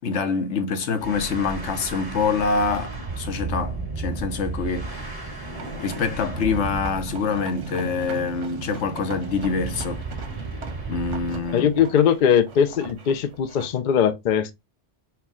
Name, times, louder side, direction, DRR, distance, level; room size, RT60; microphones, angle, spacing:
voice 1, 0.0-5.5 5.8-10.0 10.9-11.7, left 5 dB, 75° left, 1.1 m, -26 dB
sound 1, 1.0-11.5, right 3 dB, 20° right, 1.6 m, -34 dB
sound 2, 5.5-13.7, right 3 dB, 90° right, 1.2 m, -39 dB
voice 2, 11.5-14.5, left 8 dB, 55° left, 0.6 m, -20 dB
4.6 x 2.2 x 3.6 m
omnidirectional pair, 1.2 m